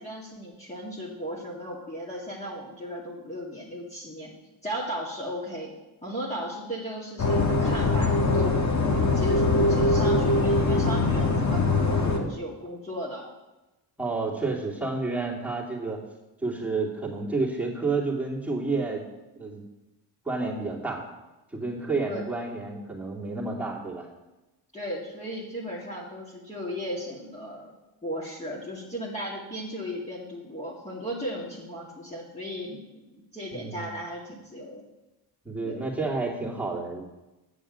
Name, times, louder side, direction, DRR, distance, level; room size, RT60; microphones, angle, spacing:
voice 1, 0.0-4.3 4.6-5.7 6.0-8.6 8.9-13.3 22.0-22.3 24.7-27.7 28.0-34.8 35.6-35.8, equal, 15° left, -5 dB, 2.1 m, -36 dB
sound 1, 7.2-12.2, left 2 dB, 35° left, 1.6 m, -22 dB
voice 2, 14.0-16.0 16.4-19.1 19.4-19.6 20.2-21.0 21.5-24.1 33.5-34.0 35.4-37.0, right 3 dB, 5° right, -4 dB, 2.6 m, -30 dB
8.8 x 6.9 x 6.3 m, 1.0 s
cardioid pair, 85°, 45 cm